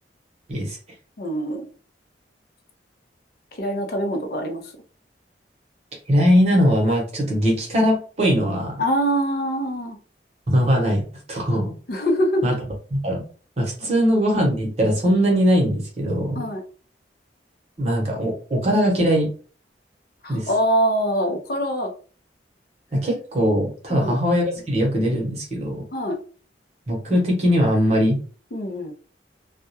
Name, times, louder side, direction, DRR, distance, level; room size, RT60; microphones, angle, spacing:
voice 1, 1.2-1.6 3.5-4.7 8.8-10.0 11.9-12.4 13.8-14.0 16.3-16.6 20.2-21.9 23.9-24.2 25.9-26.2 28.5-28.9, equal, 55° left, 4 dB, 0.5 m, -24 dB
voice 2, 6.1-8.8 10.5-11.0 11.3-11.7 12.4-12.5 12.9-13.2 13.6-16.4 17.8-19.3 20.3-20.5 22.9-25.8 26.9-28.2, equal, 35° right, 0 dB, 0.8 m, -20 dB
2.2 x 2.1 x 2.8 m, 0.39 s
head